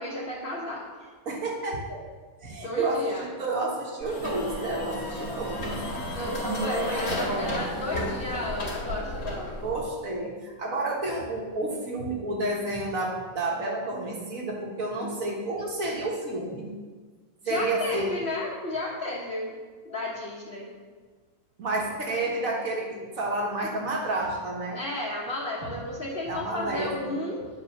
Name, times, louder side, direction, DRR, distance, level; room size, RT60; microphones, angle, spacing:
voice 1, 0.0-1.1 2.6-3.3 6.1-9.6 17.4-19.5 19.8-20.7 24.7-27.4, left 1 dB, 40° left, -6 dB, 1.5 m, -33 dB
voice 2, 1.3-2.0 2.4-5.8 6.4-8.2 9.6-16.7 17.5-18.2 21.6-24.8 26.3-27.1, right 2 dB, 70° right, -1 dB, 2.0 m, -30 dB
sound 1, 4.0-9.8, left 1 dB, 80° left, 2.4 m, -33 dB
9.2 x 5.0 x 6.6 m, 1.5 s
omnidirectional pair, 1.5 m